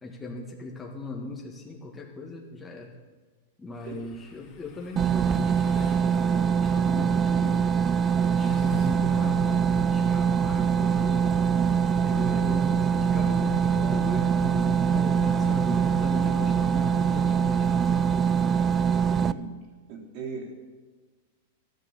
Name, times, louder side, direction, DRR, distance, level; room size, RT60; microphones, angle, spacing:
voice 1, 0.0-2.9 3.6-7.6 8.4-11.3 12.0-17.9, left 3 dB, 15° left, -1 dB, 1.8 m, -39 dB
sound 1, 3.7-6.1 7.0-9.1 10.7-13.1 13.8-17.2, left 5 dB, 40° left, 2.6 m, -51 dB
sound 2, 5.0-19.3, right 7 dB, 25° right, 0.4 m, -23 dB
sound 3, 9.4-18.1, right 4 dB, 75° right, 1.7 m, -36 dB
voice 2, 19.0-19.5 19.9-20.7, right 4 dB, 55° right, -1 dB, 3.4 m, -39 dB
13.5 x 9.2 x 7.1 m, 1.4 s
hypercardioid pair, 110°, 0 cm